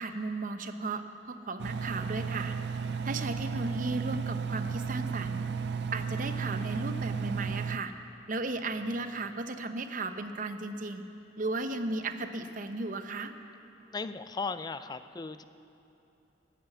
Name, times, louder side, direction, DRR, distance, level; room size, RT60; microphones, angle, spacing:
voice 1, 0.0-2.6 3.0-5.5 5.9-7.9 8.3-11.0 11.4-13.3, right 2 dB, 45° right, 8 dB, 0.8 m, -35 dB
Engine, 1.6-7.8, right 5 dB, 60° right, 0.4 m, -34 dB
voice 2, 13.9-15.4, left 4 dB, 20° left, 12 dB, 0.4 m, -36 dB
13.5 x 11.5 x 8.1 m, 2.8 s
head